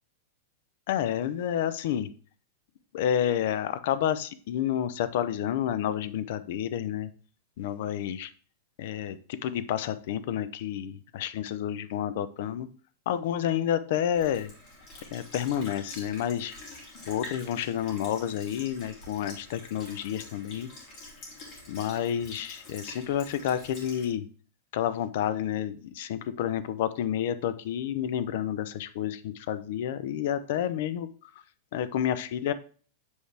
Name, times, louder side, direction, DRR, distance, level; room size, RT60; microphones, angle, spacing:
voice 1, 0.9-2.1 2.9-7.1 7.6-8.3 8.8-12.7 13.1-14.5 15.1-16.5 17.1-20.7 21.7-24.3 24.7-31.1 31.7-32.5, left 10 dB, 55° left, 13 dB, 0.6 m, -30 dB
Sink (filling or washing) / Liquid, 14.1-24.1, left 2 dB, 35° left, 3.0 m, -46 dB
8.1 x 4.9 x 3.4 m, 0.41 s
supercardioid pair, 170°, 0 cm